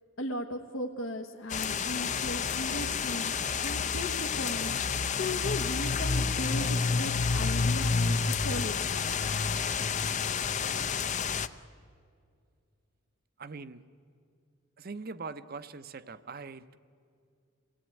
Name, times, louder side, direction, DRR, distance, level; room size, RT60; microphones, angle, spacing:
voice 1, 0.2-3.3 3.6-9.3, left 1 dB, 75° left, 3 dB, 1.3 m, -37 dB
sound 1, 1.5-11.5, left 5 dB, 35° left, 0.6 m, -29 dB
voice 2, 13.4-13.8 14.8-16.8, right 4 dB, 45° right, 13 dB, 0.8 m, -42 dB
27.5 x 17.5 x 9.1 m, 2.3 s
head